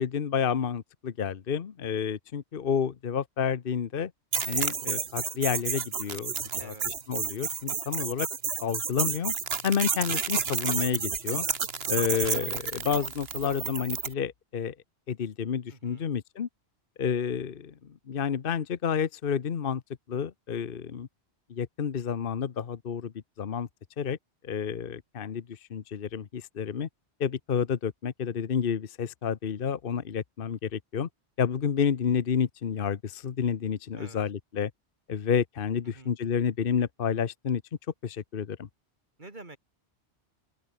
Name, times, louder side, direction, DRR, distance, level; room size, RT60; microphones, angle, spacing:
voice 1, 0.0-4.1 4.5-6.3 6.6-8.3 8.6-9.3 9.6-11.5 11.9-14.7 15.1-16.5 17.0-19.8 20.1-21.1 21.5-23.7 24.0-24.2 24.4-26.9 27.2-31.1 31.4-34.7 35.1-37.6 38.0-38.7, left 7 dB, 55° left, 1.1 m, -30 dB
sound 1, 4.3-14.1, right 6 dB, 65° right, 1.5 m, -31 dB
voice 2, 6.6-7.0 15.7-16.1 33.9-34.2 35.9-36.1 39.2-39.6, right 2 dB, 45° right, 2.9 m, -48 dB
open air
omnidirectional pair, 1.1 m